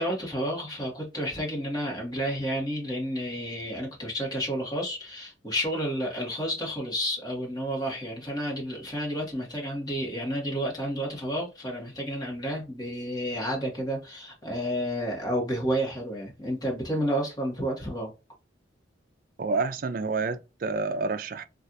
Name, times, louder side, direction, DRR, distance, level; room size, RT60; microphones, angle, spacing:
voice 1, 0.0-18.1, equal, 20° left, 1.4 m, -31 dB
voice 2, 19.4-21.4, right 4 dB, 50° right, 0.4 m, -29 dB
3.2 x 2.4 x 2.6 m
head